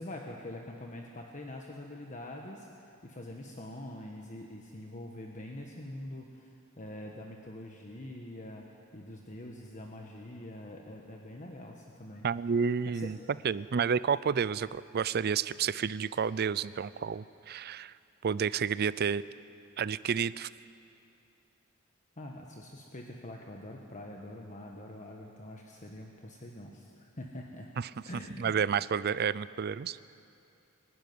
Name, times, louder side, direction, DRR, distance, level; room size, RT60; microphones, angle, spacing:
voice 1, 0.0-12.3 12.9-13.1 22.2-27.7 28.0-28.5, left 1 dB, 35° left, 1 dB, 1.3 m, -44 dB
voice 2, 12.2-13.2 13.4-17.9 18.2-19.2 19.8-20.5 27.8-27.9 28.4-30.0, right 6 dB, 50° right, 18 dB, 0.4 m, -30 dB
23.5 x 12.0 x 9.5 m, 2.6 s
head